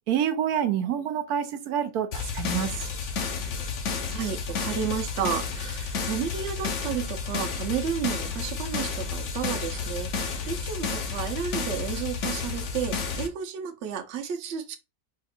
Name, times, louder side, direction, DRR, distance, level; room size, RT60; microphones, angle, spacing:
voice 1, 0.1-2.7, right 9 dB, 80° right, 1.2 m, -27 dB
sound 1, 2.1-13.3, left 5 dB, 55° left, 1.0 m, -31 dB
voice 2, 4.1-14.8, right 8 dB, 60° right, 0.9 m, -32 dB
4.7 x 2.4 x 4.3 m
omnidirectional pair, 1.6 m